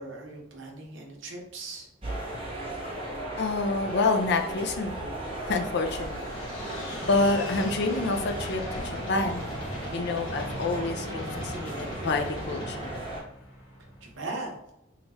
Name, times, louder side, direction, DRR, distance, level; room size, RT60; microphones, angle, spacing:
voice 1, 0.0-1.9 14.0-14.6, right 2 dB, 60° right, 0 dB, 0.8 m, -38 dB
sound 1, 2.0-13.2, right 1 dB, 25° right, 1.0 m, -36 dB
voice 2, 3.4-5.2 5.4-6.4 7.0-9.5 9.9-12.9, left 3 dB, 55° left, 4 dB, 0.4 m, -28 dB
sound 2, 5.5-14.3, left 1 dB, 75° left, 1.1 m, -39 dB
3.3 x 2.4 x 4.0 m, 0.84 s
head